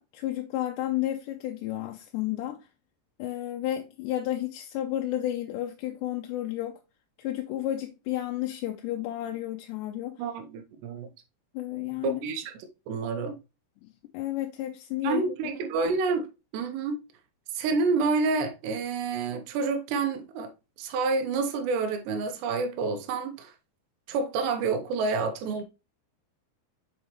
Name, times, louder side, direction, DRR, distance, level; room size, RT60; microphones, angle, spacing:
voice 1, 0.0-2.7 3.2-6.8 7.2-10.2 11.5-12.3 13.8-15.2, left 13 dB, 85° left, 2.9 m, -32 dB
voice 2, 10.2-11.1 12.0-12.5 12.9-13.4 15.0-16.3 16.5-17.0 17.5-20.5 20.8-23.5 24.1-25.6, right 4 dB, 80° right, 3.1 m, -28 dB
7.2 x 5.5 x 3.1 m
omnidirectional pair, 5.0 m